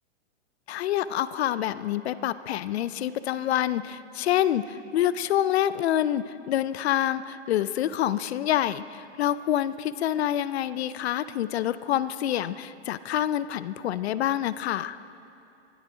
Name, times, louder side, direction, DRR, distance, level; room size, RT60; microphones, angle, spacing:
voice 1, 0.7-15.0, left 11 dB, 65° left, 15 dB, 0.6 m, -27 dB
21.0 x 12.0 x 5.0 m, 2.6 s
hypercardioid pair, 130°, 35 cm